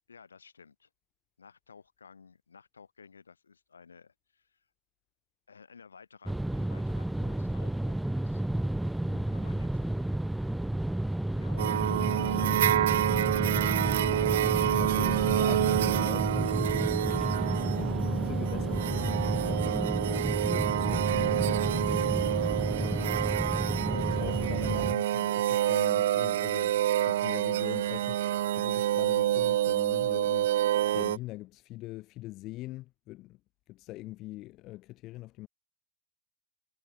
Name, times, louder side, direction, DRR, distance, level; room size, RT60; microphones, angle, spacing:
voice 1, 0.1-0.9 1.4-4.7 5.5-8.4 9.3-10.0 11.3-13.3, left 5 dB, 75° left, 6.6 m, -55 dB
sound 1, 6.3-24.9, right 1 dB, 5° right, 0.5 m, -31 dB
voice 2, 9.0-9.4 14.7-22.4 22.8-23.2 23.8-26.8 27.1-30.6 30.9-33.4 33.7-35.5, left 18 dB, 40° left, 1.9 m, -43 dB
sound 2, 11.6-31.2, right 13 dB, 60° right, 0.8 m, -28 dB
Gunshot gunfire, 13.5-19.2 21.1-21.2 22.3-22.4 23.9-24.0 25.4-25.5 25.7-25.8, left 5 dB, 15° left, 6.9 m, -57 dB
figure-of-eight pair, 90°, 0 cm